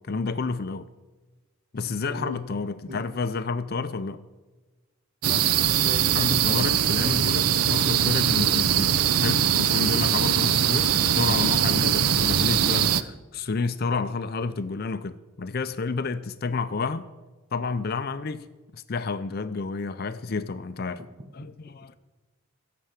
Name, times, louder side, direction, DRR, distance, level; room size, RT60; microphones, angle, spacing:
voice 1, 0.1-0.9 1.7-4.2 6.1-17.1 17.5-18.5 18.7-21.0 21.3-22.0, left 4 dB, 45° left, 0.5 m, -30 dB
voice 2, 2.0-2.4 2.9-3.0 5.2-6.1 21.0-21.5, left 1 dB, 30° right, 1.4 m, -38 dB
sound 1, 5.2-13.0, right 9 dB, 80° right, 0.6 m, -22 dB
15.0 x 6.8 x 8.9 m
head